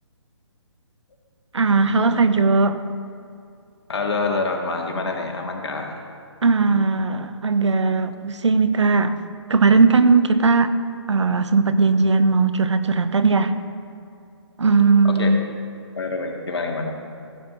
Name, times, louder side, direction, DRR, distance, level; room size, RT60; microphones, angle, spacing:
voice 1, 1.5-2.8 6.4-9.1 9.5-10.7 11.1-13.5 14.6-15.4, right 4 dB, 75° right, 11 dB, 0.9 m, -18 dB
voice 2, 3.9-6.1 15.1-15.4 16.0-17.0, left 3 dB, 65° left, 2 dB, 2.0 m, -26 dB
16.0 x 9.2 x 3.9 m, 2.5 s
figure-of-eight pair, 145°, 15 cm